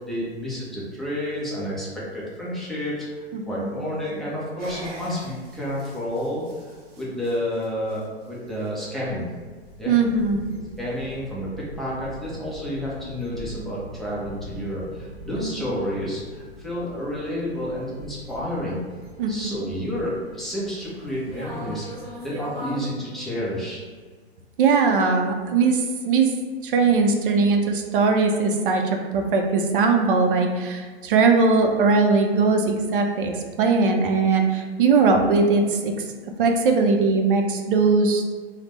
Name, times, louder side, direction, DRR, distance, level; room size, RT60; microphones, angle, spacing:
voice 1, 0.1-6.4 7.0-9.3 9.8-9.9 10.8-18.8 19.3-21.9 22.2-23.8, equal, ahead, -8 dB, 0.4 m, -30 dB
voice 2, 3.3-3.7 9.9-10.4 15.3-15.6 19.2-19.5 24.6-26.4 26.6-36.1 36.4-38.4, right 4 dB, 55° right, 3 dB, 0.5 m, -20 dB
sound 1, 4.6-22.9, equal, 30° right, 1.1 m, -42 dB
3.2 x 2.1 x 3.0 m, 1.5 s
hypercardioid pair, 115°, 32 cm